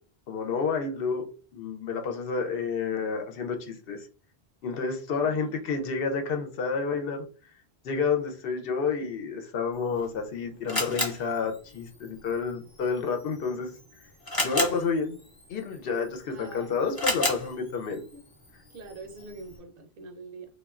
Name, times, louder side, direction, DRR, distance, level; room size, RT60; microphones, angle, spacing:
voice 1, 0.3-1.3 1.5-4.1 4.6-7.3 7.8-13.8 14.4-15.2 15.5-18.0, left 5 dB, 70° left, 4 dB, 0.7 m, -30 dB
voice 2, 5.2-5.7 16.3-16.9 17.8-18.2 18.7-20.5, right 3 dB, 65° right, 4 dB, 0.7 m, -45 dB
Camera, 9.7-19.6, left 1 dB, 25° left, 0.7 m, -35 dB
3.1 x 2.3 x 2.3 m, 0.39 s
omnidirectional pair, 1.0 m